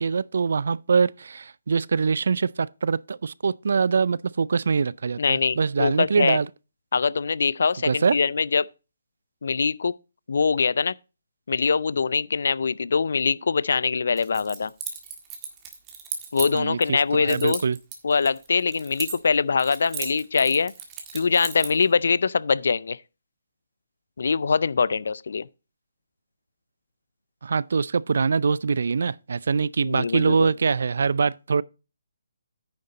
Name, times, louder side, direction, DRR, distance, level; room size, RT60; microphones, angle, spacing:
voice 1, 0.0-6.5 7.8-8.1 16.5-17.8 27.4-31.6, right 5 dB, 65° right, 0.4 m, -23 dB
voice 2, 5.2-6.4 6.9-8.7 9.4-9.9 10.3-10.9 11.5-14.7 16.3-17.6 18.0-20.7 21.1-23.0 24.2-25.5 29.8-30.5, left 5 dB, 65° left, 0.4 m, -23 dB
Keys jangling, 14.2-16.9 17.3-19.3 19.6-21.8, right 7 dB, 20° right, 1.7 m, -36 dB
9.6 x 6.5 x 4.0 m
hypercardioid pair, 155°, 0 cm